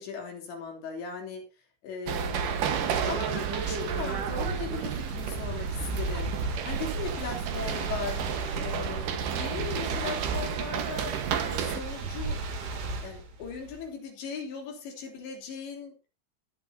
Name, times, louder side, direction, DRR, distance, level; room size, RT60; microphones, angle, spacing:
voice 1, 0.0-1.5 1.8-8.2 8.6-12.4 13.0-16.0, left 5 dB, 65° left, 2 dB, 5.3 m, -38 dB
sound 1, 2.1-11.8, right 7 dB, 65° right, 2.3 m, -31 dB
sound 2, 3.3-13.9, right 3 dB, 90° right, 5.3 m, -37 dB
22.5 x 7.7 x 2.8 m, 0.26 s
omnidirectional pair, 5.5 m